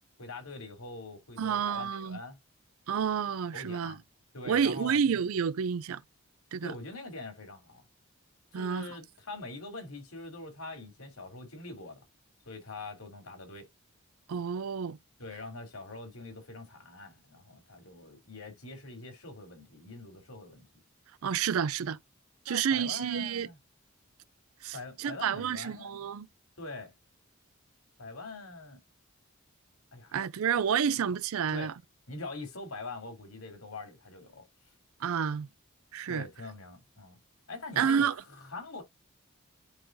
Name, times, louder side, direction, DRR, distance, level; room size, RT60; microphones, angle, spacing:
voice 1, 0.2-2.4 3.5-4.0 4.3-5.0 6.6-7.8 8.5-12.0 12.5-13.7 15.2-20.7 22.5-23.6 24.7-25.9 26.6-26.9 28.0-28.8 29.9-30.1 31.5-31.7 32.1-34.4 36.1-37.2 37.5-38.8, left 2 dB, 80° left, 3.2 m, -43 dB
voice 2, 1.4-2.2 2.9-4.0 4.5-6.0 6.5-6.7 8.5-8.9 14.3-15.0 21.2-22.0 22.5-23.5 24.6-26.3 30.1-31.7 35.0-35.5 35.9-36.2 37.8-38.2, right 7 dB, 75° right, 0.4 m, -29 dB
10.5 x 3.8 x 2.6 m
head